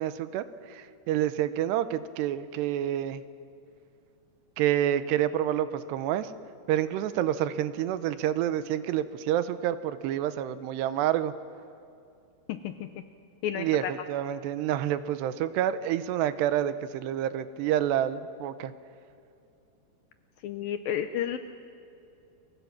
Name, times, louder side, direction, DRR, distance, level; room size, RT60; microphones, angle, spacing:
voice 1, 0.0-3.2 4.6-6.3 6.7-11.3 13.6-18.7, right 11 dB, 85° right, 13 dB, 2.9 m, -28 dB
voice 2, 13.4-13.9 20.4-21.4, left 10 dB, 75° left, 9 dB, 2.2 m, -31 dB
30.0 x 23.5 x 5.9 m, 2.6 s
omnidirectional pair, 4.9 m